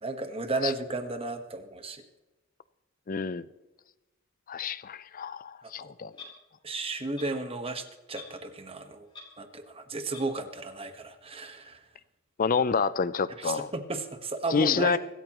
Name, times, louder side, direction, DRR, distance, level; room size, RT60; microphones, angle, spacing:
voice 1, 0.0-2.0 5.6-5.9 6.6-9.1 9.4-11.8 13.4-15.0, right 2 dB, 25° right, 1.3 m, -34 dB
voice 2, 3.1-3.5 4.5-6.1 12.4-13.7 14.5-15.0, left 5 dB, 40° left, 0.5 m, -28 dB
Clock, 6.1-6.3 7.1-7.3 8.2-8.4 8.7-8.8 9.1-9.3 10.1-10.3, left 4 dB, 20° left, 4.0 m, -45 dB
25.0 x 13.5 x 3.0 m
head